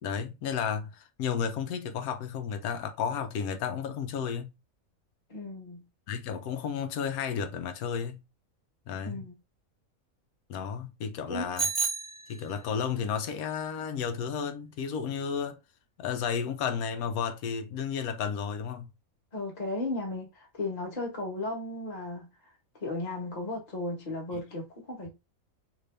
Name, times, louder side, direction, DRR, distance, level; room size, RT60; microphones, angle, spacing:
voice 1, 0.0-4.5 6.1-8.2 8.9-9.2 10.5-11.7 12.3-15.6 16.0-18.9, left 7 dB, 85° left, 1.0 m, -32 dB
voice 2, 5.3-5.8 9.0-9.3 11.3-11.5 19.3-22.3 22.8-25.1, left 2 dB, 30° left, 1.1 m, -35 dB
Bicycle bell, 11.6-12.8, right 5 dB, ahead, 0.8 m, -31 dB
2.9 x 2.6 x 3.2 m
omnidirectional pair, 1.5 m